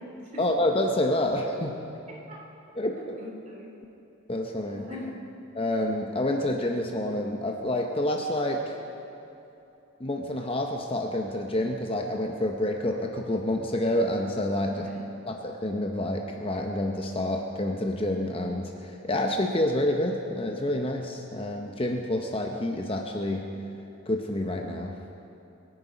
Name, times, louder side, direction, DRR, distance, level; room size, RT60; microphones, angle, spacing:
voice 1, 0.4-1.8 2.8-3.2 4.3-4.8 5.5-8.7 10.0-14.8 15.3-23.5 24.1-25.0, left 1 dB, 25° left, 2 dB, 0.8 m, -28 dB
voice 2, 2.1-2.4 3.0-3.7 4.7-5.1 14.6-15.0, left 2 dB, 35° right, -3 dB, 3.1 m, -42 dB
22.5 x 9.0 x 5.1 m, 2.9 s
head